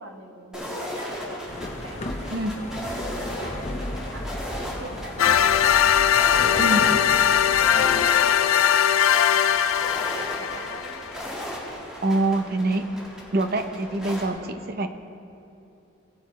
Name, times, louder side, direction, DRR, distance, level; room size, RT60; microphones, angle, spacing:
voice 1, 0.0-1.4 1.8-7.0 7.3-7.8 8.3-11.1, right 1 dB, 65° right, 2 dB, 1.3 m, -43 dB
sound 1, 0.5-14.3, equal, 5° right, 1.7 m, -36 dB
sound 2, 1.5-8.1, left 1 dB, 30° left, 0.8 m, -35 dB
sound 3, 5.2-11.1, left 9 dB, 85° left, 0.3 m, -20 dB
voice 2, 12.0-12.9 13.3-14.9, right 2 dB, 50° right, 8 dB, 0.6 m, -25 dB
18.0 x 8.3 x 3.1 m, 2.7 s
head